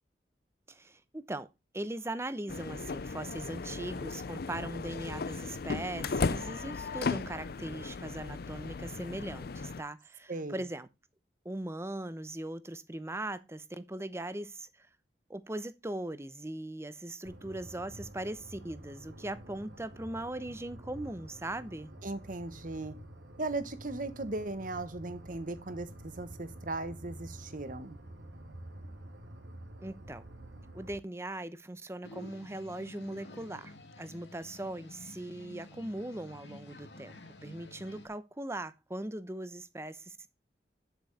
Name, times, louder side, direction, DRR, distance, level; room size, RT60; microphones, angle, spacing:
voice 1, 0.7-1.5 1.7-10.9 11.4-14.9 15.3-21.9 29.8-30.2 30.7-40.3, right 1 dB, 15° right, 0.8 m, -40 dB
sound 1, 2.5-9.8, left 4 dB, 60° left, 0.5 m, -36 dB
voice 2, 10.3-10.6 22.0-23.0 23.4-28.0, right 2 dB, 50° right, 1.3 m, -37 dB
sound 2, 17.2-31.0, right 1 dB, 85° right, 2.2 m, -49 dB
sound 3, 32.0-38.1, left 1 dB, 85° left, 2.4 m, -50 dB
8.6 x 8.0 x 4.2 m
head